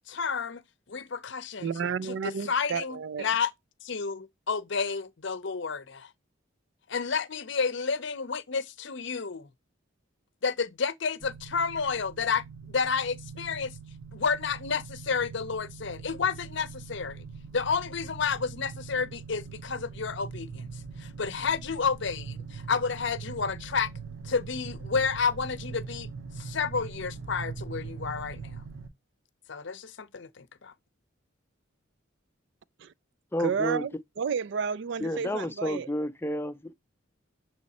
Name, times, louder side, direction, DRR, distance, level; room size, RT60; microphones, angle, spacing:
voice 1, 0.1-0.6 0.9-1.7 2.0-3.5 3.8-6.1 6.9-9.5 10.4-13.7 14.1-17.2 17.5-23.9 24.2-26.1 26.4-28.6 29.5-30.7, left 5 dB, 60° left, 0.6 m, -31 dB
voice 2, 1.6-3.3 32.8-32.9 33.4-35.9, right 6 dB, 60° right, 0.4 m, -31 dB
sound 1, 11.2-28.9, right 5 dB, 75° right, 0.8 m, -42 dB
voice 3, 33.3-33.8 35.0-36.7, left 1 dB, 10° left, 0.5 m, -31 dB
7.4 x 3.1 x 4.1 m
head